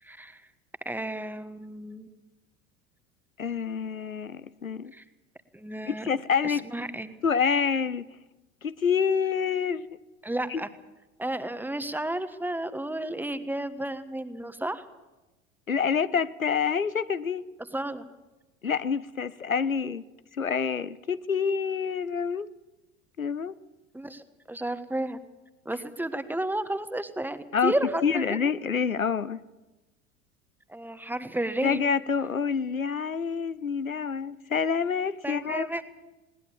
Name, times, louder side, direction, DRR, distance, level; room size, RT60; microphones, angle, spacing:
voice 1, 0.0-0.4 0.8-2.1 4.9-5.0 5.5-6.1 6.4-7.1 10.2-10.7 11.2-14.9 17.7-18.0 23.9-25.2 25.6-28.4 30.7-31.8 35.2-35.8, right 1 dB, 5° right, 11 dB, 1.3 m, -32 dB
voice 2, 3.4-4.9 5.9-6.6 7.2-8.0 8.6-9.9 10.5-10.6 15.7-17.4 18.6-20.0 20.4-22.5 23.2-23.5 27.5-27.7 28.0-29.4 31.6-35.7, left 6 dB, 90° left, 16 dB, 0.7 m, -27 dB
20.5 x 18.5 x 7.1 m, 1.1 s
figure-of-eight pair, 75°, 40 cm